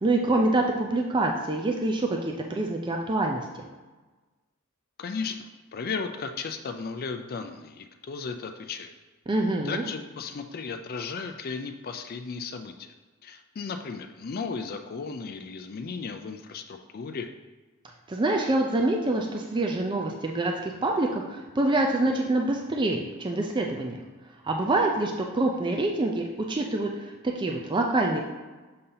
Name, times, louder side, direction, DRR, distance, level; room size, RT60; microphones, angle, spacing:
voice 1, 0.0-3.4 9.3-9.8 18.1-24.0 24.4-28.2, right 2 dB, 20° right, 1 dB, 0.4 m, -26 dB
voice 2, 5.0-8.9 9.6-12.9 13.2-17.3, left 5 dB, 45° left, 6 dB, 0.4 m, -35 dB
6.6 x 2.8 x 5.5 m, 1.3 s
head